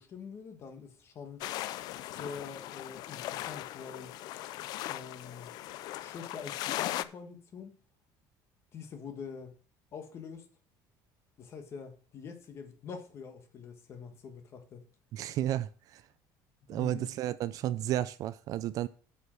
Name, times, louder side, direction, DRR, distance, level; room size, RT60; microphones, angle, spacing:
voice 1, 0.0-1.5 2.1-4.2 4.9-5.5 6.0-7.8 8.7-9.6 9.9-10.4 11.4-14.9 16.6-17.1, left 6 dB, 30° left, 1.5 m, -45 dB
sound 1, 1.4-7.0, left 14 dB, 55° left, 0.4 m, -38 dB
voice 2, 15.1-16.0 16.7-18.9, right 12 dB, 45° right, 0.4 m, -32 dB
8.0 x 5.3 x 6.3 m
cardioid pair, 175°, 8 cm